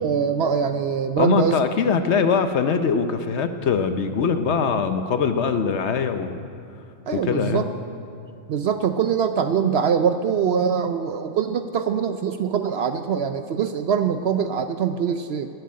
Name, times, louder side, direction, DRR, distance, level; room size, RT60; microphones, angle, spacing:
voice 1, 0.0-1.6 7.1-7.6 8.5-15.5, right 7 dB, 60° right, 9 dB, 0.7 m, -23 dB
voice 2, 1.2-6.4 7.1-7.7, left 6 dB, 60° left, 9 dB, 0.9 m, -22 dB
14.0 x 7.8 x 9.5 m, 2.4 s
omnidirectional pair, 1.4 m